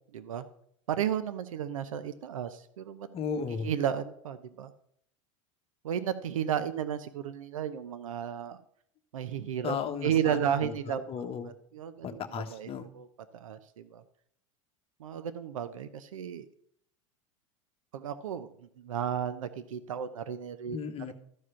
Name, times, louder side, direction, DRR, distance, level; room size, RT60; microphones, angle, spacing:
voice 1, 0.1-0.4 0.9-3.1 3.6-4.7 5.8-8.6 9.1-9.8 10.0-11.0 11.7-13.1 13.3-14.0 15.0-16.5 17.9-20.8, right 9 dB, 80° right, 12 dB, 0.7 m, -33 dB
voice 2, 3.1-3.7 9.6-11.5 12.0-12.9 20.7-21.1, left 6 dB, 35° left, 6 dB, 1.2 m, -35 dB
13.0 x 4.9 x 5.7 m, 0.68 s
hypercardioid pair, 90°, 17 cm